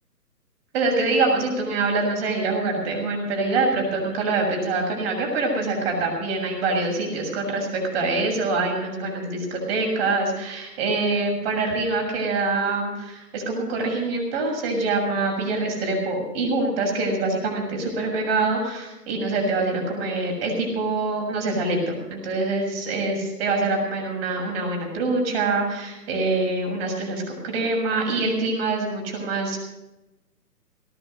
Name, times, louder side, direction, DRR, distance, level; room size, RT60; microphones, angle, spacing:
voice 1, 0.7-29.6, right 3 dB, 35° right, 0 dB, 7.0 m, -25 dB
18.5 x 11.5 x 6.6 m, 1.0 s
figure-of-eight pair, 140°, 49 cm